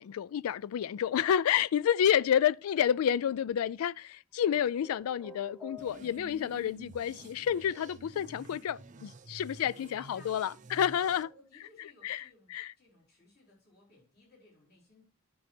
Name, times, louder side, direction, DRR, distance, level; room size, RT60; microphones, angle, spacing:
voice 1, 0.0-11.3 12.0-12.2 12.5-12.7, left 9 dB, 85° left, 0.3 m, -29 dB
sound 1, 4.4-6.5, left 3 dB, ahead, 1.0 m, -50 dB
sound 2, 5.8-11.2, right 2 dB, 35° right, 0.5 m, -50 dB
voice 2, 10.0-10.4 11.2-15.0, left 2 dB, 45° left, 4.3 m, -60 dB
9.6 x 5.3 x 4.3 m
head